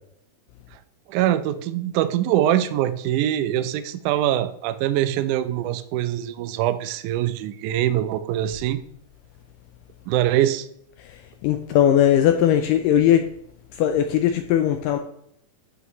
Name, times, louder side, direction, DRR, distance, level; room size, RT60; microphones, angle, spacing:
voice 1, 1.1-8.8 10.1-10.7, right 12 dB, 80° right, 11 dB, 1.8 m, -23 dB
voice 2, 11.4-13.2 13.8-15.0, left 10 dB, 85° left, 6 dB, 2.0 m, -19 dB
11.0 x 6.1 x 3.1 m, 0.73 s
omnidirectional pair, 4.3 m